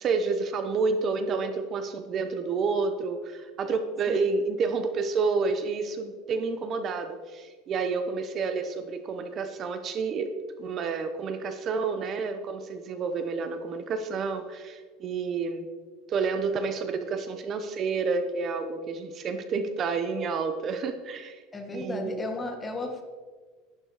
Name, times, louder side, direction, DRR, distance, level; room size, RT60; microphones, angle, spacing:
voice 1, 0.0-10.3 10.6-15.7 16.1-21.4 21.7-22.2, right 4 dB, 30° right, 9 dB, 0.9 m, -29 dB
voice 2, 21.5-23.0, left 2 dB, 10° left, 4 dB, 1.6 m, -34 dB
11.5 x 11.5 x 4.9 m, 1.5 s
cardioid pair, 160°, 0 cm